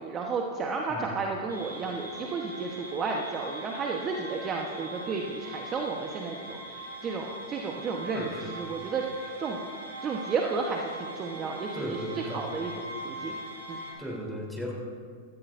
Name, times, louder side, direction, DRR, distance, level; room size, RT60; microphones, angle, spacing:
voice 1, 0.0-9.6 10.0-13.4 13.7-13.8, right 4 dB, 25° right, 1 dB, 1.1 m, -33 dB
sound 1, 1.5-13.9, right 1 dB, 85° right, 2.9 m, -41 dB
voice 2, 8.1-8.5 11.7-12.4 14.0-14.7, equal, ahead, -3 dB, 3.5 m, -36 dB
16.5 x 14.0 x 2.6 m, 2.1 s
figure-of-eight pair, 100°, 0 cm